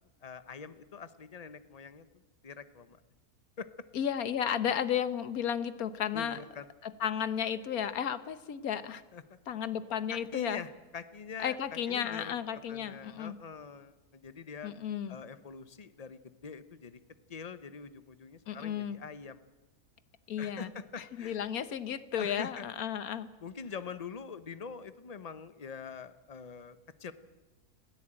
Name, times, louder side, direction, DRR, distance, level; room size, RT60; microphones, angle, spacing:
voice 1, 0.2-2.0 2.4-3.0 3.6-3.7 6.1-6.7 9.1-9.4 10.1-12.4 12.7-14.7 15.1-17.0 17.3-19.5 20.4-21.4 22.2-22.6 23.4-27.1, left 5 dB, 30° left, 13 dB, 0.8 m, -44 dB
voice 2, 3.9-6.4 6.8-9.0 9.5-10.6 11.4-13.4 14.6-15.2 18.5-19.0 20.3-20.7 21.0-23.3, left 9 dB, 75° left, 13 dB, 1.5 m, -33 dB
21.0 x 15.5 x 8.9 m, 1.1 s
omnidirectional pair, 1.6 m